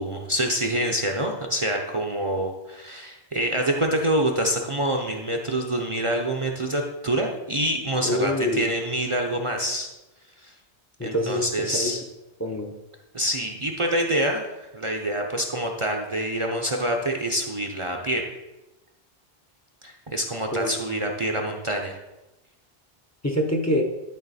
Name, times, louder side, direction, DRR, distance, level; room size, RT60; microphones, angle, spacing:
voice 1, 0.0-9.9 10.4-10.5 11.0-12.0 13.1-18.2 19.8-22.0, right 1 dB, 35° right, 1 dB, 0.7 m, -26 dB
voice 2, 8.0-8.7 11.0-12.0 12.4-12.8 20.5-20.7 23.2-23.8, left 1 dB, 20° left, 2 dB, 0.7 m, -25 dB
11.5 x 4.2 x 4.1 m, 1.0 s
omnidirectional pair, 1.0 m